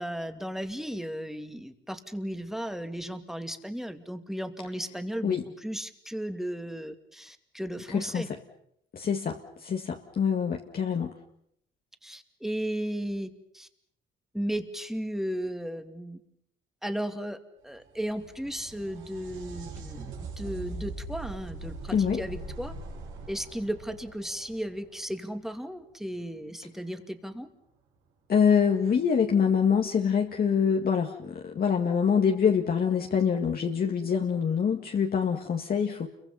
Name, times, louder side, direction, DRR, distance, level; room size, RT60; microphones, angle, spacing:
voice 1, 0.0-8.3 12.0-13.7 14.3-16.2 16.8-17.4 17.6-22.7 23.3-27.5, equal, ahead, 7 dB, 2.4 m, -35 dB
voice 2, 7.9-8.3 8.9-11.1 21.9-22.2 28.3-36.1, left 7 dB, 50° left, 1 dB, 2.0 m, -25 dB
sound 1, 17.7-25.3 28.7-28.8 29.9-30.0, right 3 dB, 85° right, 6.5 m, -41 dB
29.5 x 23.5 x 5.7 m, 0.71 s
cardioid pair, 90°, 20 cm